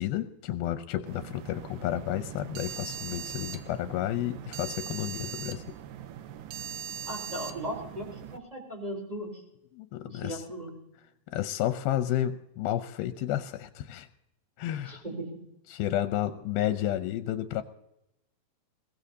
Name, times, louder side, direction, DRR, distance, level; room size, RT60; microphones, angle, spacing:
voice 1, 0.0-5.8 9.7-10.4 11.3-14.1 14.6-15.0 15.7-17.6, left 12 dB, 90° left, 9 dB, 2.6 m, -31 dB
sound 1, 1.1-8.4, right 8 dB, 75° right, 2.3 m, -40 dB
voice 2, 7.0-9.4 10.1-10.7 14.8-15.3, right 1 dB, 10° right, 0 dB, 3.8 m, -37 dB
21.5 x 17.0 x 2.8 m, 0.85 s
omnidirectional pair, 4.3 m